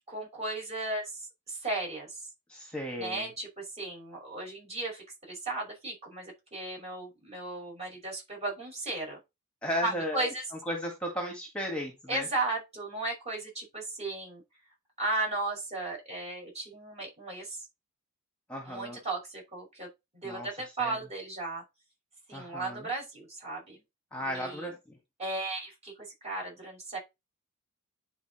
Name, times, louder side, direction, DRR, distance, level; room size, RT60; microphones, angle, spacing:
voice 1, 0.1-2.2 3.0-9.2 9.8-10.4 12.1-14.4 15.0-17.6 18.7-19.9 20.1-21.6 22.3-23.8 24.2-24.7 25.2-27.0, right 2 dB, 30° right, 5.8 m, -35 dB
voice 2, 2.5-3.3 9.6-10.3 10.7-12.3 18.5-19.0 20.2-21.0 22.3-22.9 24.1-25.0, equal, 5° left, 2.0 m, -35 dB
10.0 x 4.6 x 4.4 m
head